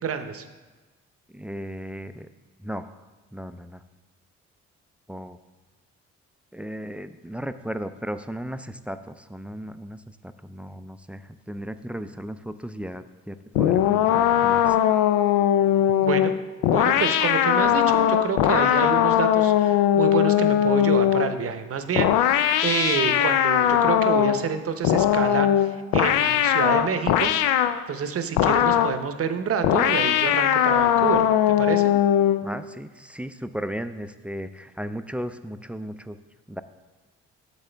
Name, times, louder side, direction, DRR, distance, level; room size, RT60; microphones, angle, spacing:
voice 1, 0.0-0.4 16.0-16.3 16.6-22.3 22.6-27.3 27.9-31.9, right 6 dB, 50° right, 9 dB, 0.8 m, -28 dB
voice 2, 1.3-2.3 2.6-3.0 3.3-3.8 5.1-5.4 6.5-14.8 32.4-36.2 36.5-36.6, equal, 5° right, 11 dB, 0.3 m, -35 dB
sound 1, 13.6-21.4 22.0-24.5 24.8-27.8 28.4-29.0 29.6-32.5, left 11 dB, 85° left, 0.5 m, -20 dB
8.3 x 7.0 x 3.3 m, 1.2 s
supercardioid pair, 65°, 31 cm